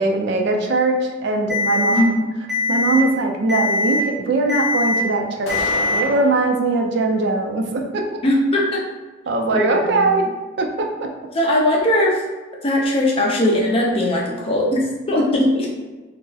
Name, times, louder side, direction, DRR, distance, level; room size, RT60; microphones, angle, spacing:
voice 1, 0.0-2.1 2.7-8.0 9.3-10.2 10.6-11.1, right 2 dB, 60° right, 2 dB, 0.4 m, -21 dB
Alarm, 1.5-2.0 2.5-3.0 3.5-4.0 4.5-5.0 5.5-6.0, left 3 dB, ahead, 0.7 m, -21 dB
voice 2, 1.9-2.3 8.2-8.8 9.5-10.1 11.3-12.2 12.6-15.7, left 1 dB, 30° left, -2 dB, 0.5 m, -19 dB
sound 1, 5.5-6.5, left 1 dB, 85° left, 0.7 m, -29 dB
2.4 x 2.0 x 3.8 m, 1.3 s
head